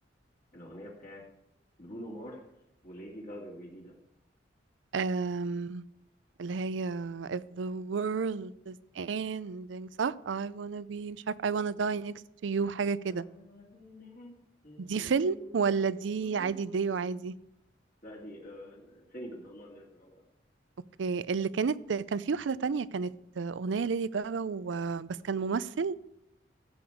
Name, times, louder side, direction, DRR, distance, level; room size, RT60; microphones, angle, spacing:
voice 1, 0.5-1.2 1.8-2.4 2.8-3.9 13.1-14.4 14.6-17.3 18.0-20.2, equal, 50° left, 2.4 m, -47 dB
voice 2, 4.9-5.8 6.4-12.1 12.4-13.2 14.8-17.3 21.0-26.1, right 5 dB, 80° right, 0.5 m, -31 dB
15.5 x 8.1 x 4.6 m
head